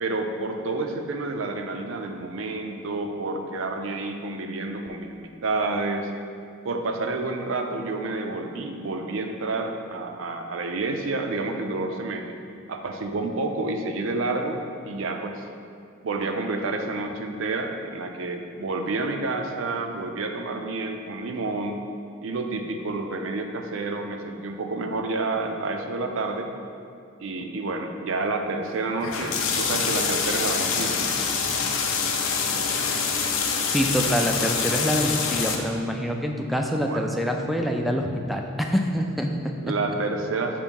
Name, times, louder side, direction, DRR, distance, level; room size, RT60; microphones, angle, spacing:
voice 1, 0.0-6.1 6.6-12.4 12.7-14.6 14.8-15.4 16.0-21.9 22.2-26.5 27.2-31.2 36.8-37.1 39.6-40.6, right 3 dB, 65° right, 5 dB, 0.5 m, -29 dB
sound 1, 29.0-35.6, left 5 dB, 70° left, 0.6 m, -25 dB
voice 2, 33.7-39.7, equal, ahead, 2 dB, 0.3 m, -26 dB
6.8 x 2.7 x 5.2 m, 2.4 s
head